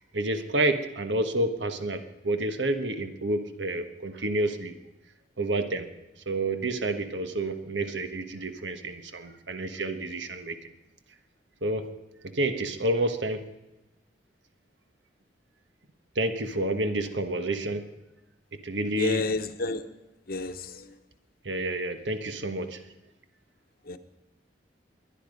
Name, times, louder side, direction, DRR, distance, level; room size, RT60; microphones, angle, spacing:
voice 1, 0.1-4.8 5.4-5.9 6.3-10.6 11.6-11.9 12.2-13.5 16.1-17.9 18.5-19.2 21.4-22.8, right 1 dB, 85° right, 9 dB, 1.3 m, -29 dB
voice 2, 18.9-19.9 20.3-21.0 23.8-24.0, left 3 dB, 55° left, 10 dB, 1.0 m, -30 dB
23.0 x 10.0 x 5.2 m, 0.98 s
head